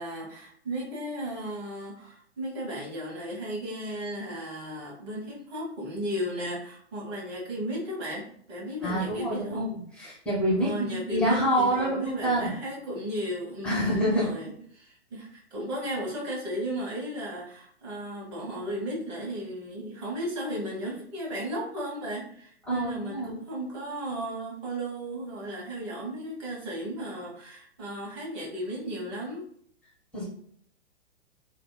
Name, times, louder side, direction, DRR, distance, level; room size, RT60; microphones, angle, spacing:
voice 1, 0.0-9.7 10.6-29.5, equal, 30° right, -5 dB, 1.1 m, -35 dB
voice 2, 8.8-12.5 13.6-14.3 22.7-23.3 30.1-30.2, right 1 dB, 5° left, -8 dB, 0.6 m, -27 dB
2.7 x 2.1 x 2.2 m, 0.63 s
figure-of-eight pair, 115°, 35 cm